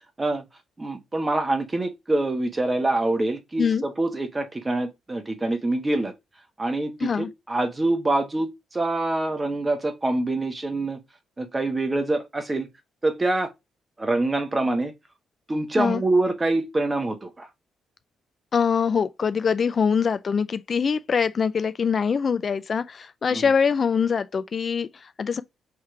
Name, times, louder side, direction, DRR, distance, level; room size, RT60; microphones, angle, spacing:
voice 1, 0.8-6.1 6.6-11.0 11.4-12.7 13.0-13.5 14.0-14.9 15.5-17.5 23.3-23.4, right 2 dB, 25° right, 1.2 m, -25 dB
voice 2, 18.5-25.4, left 6 dB, 50° left, 0.3 m, -23 dB
3.6 x 3.1 x 4.6 m
cardioid pair, 70°, 0 cm